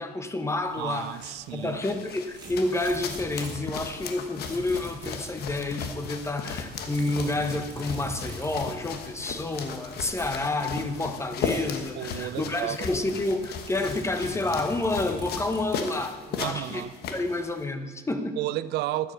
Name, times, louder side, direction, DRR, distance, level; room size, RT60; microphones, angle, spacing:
voice 1, 0.0-1.2 1.5-16.8 17.1-18.4, left 2 dB, 15° left, 1.1 m, -29 dB
sound 1, 0.7-17.6, left 5 dB, 70° left, 1.3 m, -37 dB
voice 2, 0.8-1.8 12.0-12.9 16.4-16.9 18.4-19.1, right 15 dB, 80° right, 0.5 m, -32 dB
sound 2, 2.3-3.6 4.4-5.3 6.9-8.7 10.1-10.4 11.4-11.8 12.2-12.3 13.7-16.1, right 1 dB, 25° right, 2.8 m, -42 dB
12.5 x 7.8 x 6.7 m
cardioid pair, 110°, 17 cm